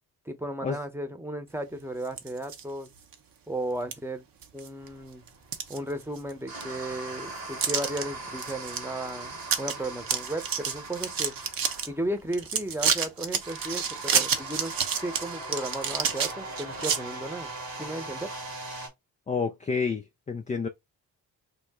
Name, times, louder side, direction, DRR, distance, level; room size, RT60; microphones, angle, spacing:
voice 1, 0.3-2.9 3.5-4.2 4.5-5.2 5.7-11.3 11.9-14.7 15.0-17.5 17.8-18.3, right 1 dB, 5° right, 0.9 m, -35 dB
sound 1, 2.0-2.6 3.1-3.2 3.9-4.0 4.4-4.9 5.3-6.3 6.6-6.7 7.6-8.0 8.4-8.8 9.1-9.2 9.4-9.7 10.0-11.9 12.3-17.0, right 7 dB, 50° right, 0.8 m, -29 dB
sound 2, 4.8-18.9, right 2 dB, 75° right, 1.6 m, -40 dB
voice 2, 19.3-20.7, left 5 dB, 20° left, 0.4 m, -29 dB
3.0 x 2.0 x 3.6 m
hypercardioid pair, 40°, 44 cm